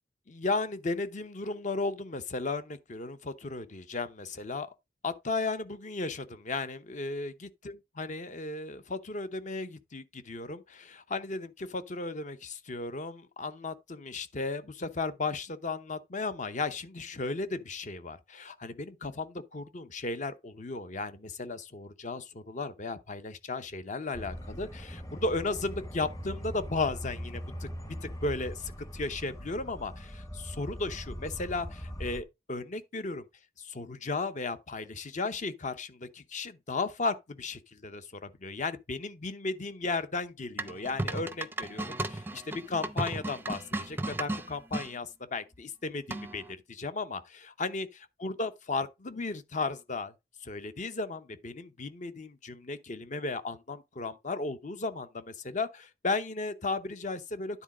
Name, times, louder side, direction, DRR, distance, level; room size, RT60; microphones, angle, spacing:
voice 1, 0.3-4.7 5.0-33.2 33.6-50.1 50.4-57.6, left 3 dB, 45° left, 0.8 m, -35 dB
sound 1, 24.1-32.2, equal, 20° left, 1.0 m, -41 dB
sound 2, 40.6-44.9 46.1-46.5, right 2 dB, 10° right, 0.5 m, -35 dB
10.0 x 4.0 x 4.9 m
head